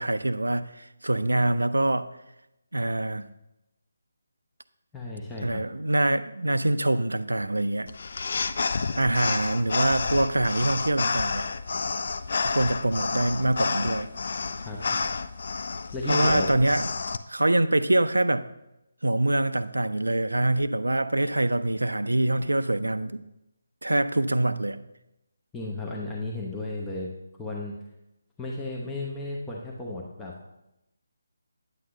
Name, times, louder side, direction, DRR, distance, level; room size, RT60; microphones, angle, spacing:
voice 1, 0.0-2.1 2.7-3.3 5.4-7.9 9.0-11.5 12.4-14.1 16.1-16.9 17.3-18.5 19.0-23.2 23.8-24.8, right 1 dB, 70° right, 13 dB, 0.5 m, -25 dB
voice 2, 4.9-5.6 14.6-15.0 15.9-16.5 25.5-27.1 27.4-27.7 28.4-30.3, left 2 dB, 10° left, -4 dB, 0.8 m, -34 dB
sound 1, 7.9-17.2, left 4 dB, 50° left, 0.4 m, -29 dB
9.4 x 7.6 x 3.2 m, 0.90 s
figure-of-eight pair, 150°, 0 cm